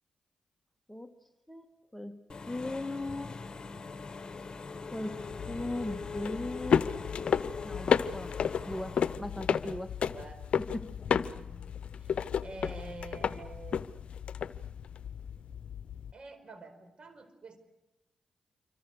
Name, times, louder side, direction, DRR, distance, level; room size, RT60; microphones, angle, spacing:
voice 1, 1.5-3.4 4.9-6.9 7.6-10.0 10.7-11.3, left 1 dB, 5° left, 7 dB, 1.7 m, -39 dB
Engine / Mechanisms, 2.3-9.2, left 4 dB, 40° left, 1.4 m, -42 dB
sound 1, 5.2-16.1, left 7 dB, 65° left, 0.8 m, -32 dB
voice 2, 11.2-11.6 12.0-13.9 16.1-17.6, right 2 dB, 50° right, 10 dB, 4.7 m, -47 dB
27.0 x 24.5 x 6.6 m, 0.93 s
supercardioid pair, 45°, 2 cm